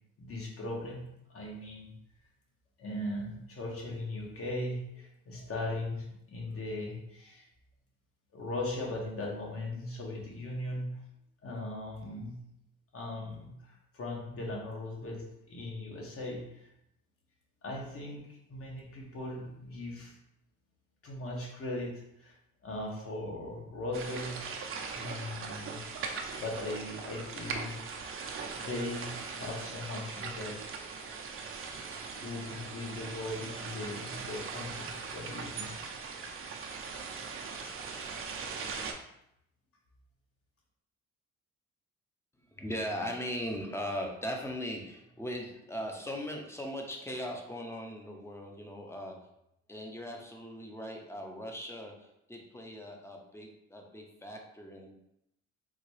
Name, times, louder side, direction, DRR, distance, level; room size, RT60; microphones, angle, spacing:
voice 1, 0.2-1.0 1.3-1.9 2.8-7.5 8.3-11.0 11.4-12.4 12.9-16.7 17.6-20.1 21.0-22.3 22.6-24.4 24.9-25.8 26.3-28.0 28.5-30.8 32.2-35.8 37.6-37.8, left 1 dB, 50° left, -2 dB, 1.1 m, -39 dB
sound 1, 23.9-38.9, right 5 dB, 45° right, 0.5 m, -40 dB
voice 2, 42.6-49.2 49.7-54.9, equal, 10° left, 1 dB, 0.6 m, -39 dB
3.8 x 2.2 x 3.1 m, 0.80 s
cardioid pair, 90°, 30 cm